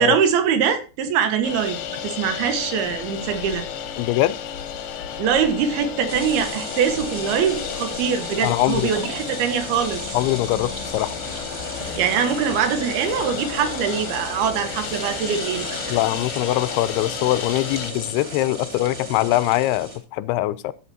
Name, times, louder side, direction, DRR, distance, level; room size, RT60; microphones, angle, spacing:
voice 1, 0.0-1.8 2.0-3.7 5.2-10.2 12.0-16.0, right 7 dB, 75° right, 3.3 m, -23 dB
sound 1, 1.4-17.9, left 8 dB, 70° left, 2.1 m, -33 dB
voice 2, 4.0-4.4 8.4-9.0 10.1-11.2 15.9-20.7, left 16 dB, 85° left, 2.6 m, -22 dB
sound 2, 6.1-20.0, right 1 dB, 20° right, 1.8 m, -35 dB
14.0 x 8.1 x 2.8 m
omnidirectional pair, 4.5 m